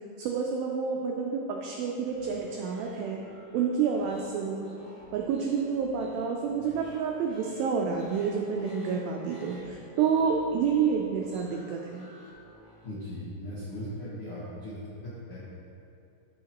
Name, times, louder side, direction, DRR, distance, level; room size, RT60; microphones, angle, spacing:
voice 1, 0.2-3.2 3.5-4.7 5.1-12.1, right 6 dB, 90° right, 1 dB, 2.0 m, -29 dB
sound 1, 2.1-12.9, equal, 55° left, 3.1 m, -52 dB
voice 2, 12.8-15.4, equal, 75° left, -10 dB, 1.3 m, -38 dB
14.0 x 5.0 x 3.0 m, 2.6 s
omnidirectional pair, 4.8 m